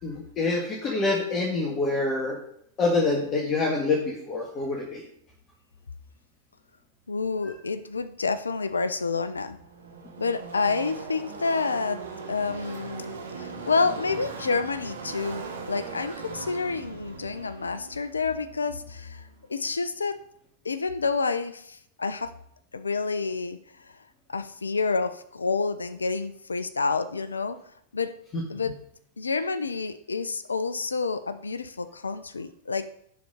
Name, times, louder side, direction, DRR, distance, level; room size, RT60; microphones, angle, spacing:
voice 1, 0.0-2.4 2.8-5.0 7.4-7.5 28.3-28.4, left 3 dB, 35° left, -1 dB, 1.7 m, -26 dB
voice 2, 7.1-9.6 10.2-20.2 20.6-22.3 22.7-23.9 24.3-27.6 27.9-28.1 28.5-28.8 29.2-32.9, left 4 dB, 90° left, 13 dB, 0.6 m, -29 dB
Car passing by / Race car auto racing, 9.0-19.4, right 4 dB, 85° right, 1.4 m, -40 dB
10.0 x 4.3 x 5.0 m, 0.69 s
hypercardioid pair, 100°, 0 cm